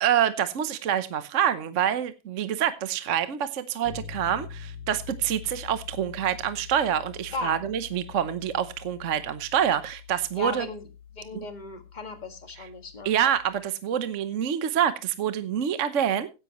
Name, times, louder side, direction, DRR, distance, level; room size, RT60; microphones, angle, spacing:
voice 1, 0.0-10.7 11.3-11.5 12.6-12.7 13.0-16.3, right 9 dB, 50° right, 12 dB, 1.0 m, -26 dB
sound 1, 3.8-13.7, left 7 dB, 85° left, 2.5 m, -45 dB
voice 2, 10.4-10.8 11.1-13.1, left 2 dB, 25° left, 7 dB, 1.9 m, -36 dB
16.5 x 10.5 x 3.0 m, 0.29 s
omnidirectional pair, 2.1 m